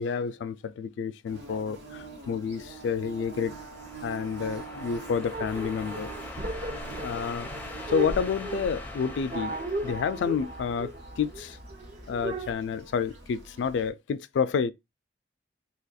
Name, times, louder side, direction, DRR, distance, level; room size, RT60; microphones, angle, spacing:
voice 1, 0.0-3.6 4.0-6.1 7.0-7.5 7.9-9.6 9.8-11.6 12.1-14.7, left 6 dB, 70° left, 0.3 m, -29 dB
Bird / Buzz, 1.3-13.9, right 4 dB, 80° right, 1.2 m, -46 dB
sound 1, 2.8-11.3, left 2 dB, 10° left, 0.5 m, -43 dB
sound 2, 5.3-12.5, right 2 dB, 50° right, 0.7 m, -36 dB
2.8 x 2.3 x 4.0 m
head